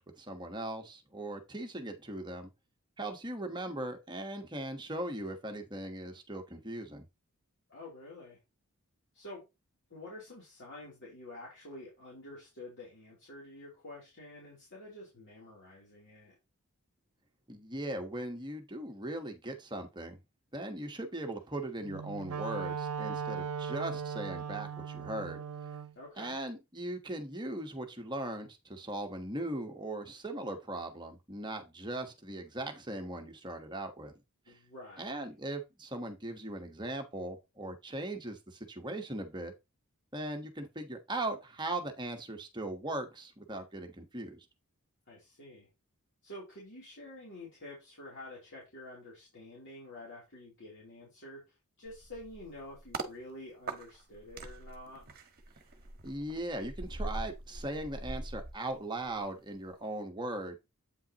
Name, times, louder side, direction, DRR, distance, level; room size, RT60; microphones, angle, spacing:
voice 1, 0.0-2.5 3.0-7.0 17.5-20.2 20.5-25.4 26.2-34.1 34.5-34.6 35.0-39.5 40.1-44.4 56.0-60.6, right 1 dB, 20° right, 1.2 m, -39 dB
voice 2, 7.7-8.4 9.1-9.4 9.9-16.3 25.9-26.4 34.5-35.2 45.1-45.7 46.2-55.0, left 1 dB, 55° left, 3.1 m, -49 dB
Wind instrument woodwind instrument, 21.8-25.9, right 6 dB, 70° right, 0.5 m, -38 dB
sound 1, 51.9-53.1 53.7-59.2 59.6-59.8, right 2 dB, 45° right, 1.2 m, -42 dB
8.4 x 5.5 x 2.9 m
head